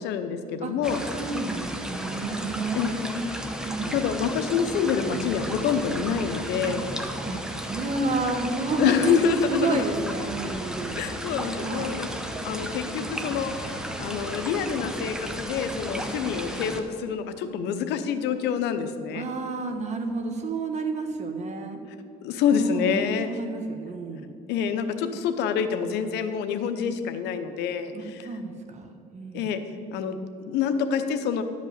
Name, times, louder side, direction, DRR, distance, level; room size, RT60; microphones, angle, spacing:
voice 1, 0.0-1.0 2.7-2.9 3.9-6.8 8.8-9.8 10.9-19.3 22.2-23.3 24.5-28.3 29.3-29.6 29.9-31.4, left 7 dB, 85° left, 9 dB, 0.9 m, -27 dB
sound 1, 0.8-16.8, equal, 5° right, 1.0 m, -34 dB
voice 2, 1.1-3.3 3.6-4.0 6.7-6.8 7.2-11.1 11.6-11.9 19.1-21.8 22.5-24.3 27.9-28.9 29.1-29.5, right 3 dB, 40° right, 5 dB, 1.4 m, -31 dB
12.0 x 5.3 x 7.9 m, 2.4 s
cardioid pair, 110°, 17 cm